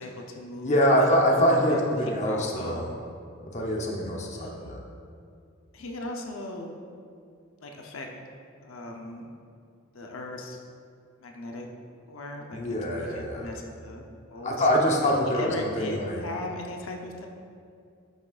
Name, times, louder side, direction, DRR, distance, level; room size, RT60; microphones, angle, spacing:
voice 1, 0.0-1.9 2.2-2.9 4.3-4.7 5.7-6.8 7.6-8.1 8.6-9.3 9.9-10.6 11.2-11.7 12.1-12.6 13.0-14.0 14.3-17.3, left 1 dB, 85° left, 1 dB, 0.8 m, -38 dB
voice 2, 0.6-2.9 3.5-4.8 12.5-13.4 14.4-16.2, equal, 35° left, -1 dB, 0.8 m, -24 dB
10.5 x 6.2 x 2.5 m, 2.3 s
head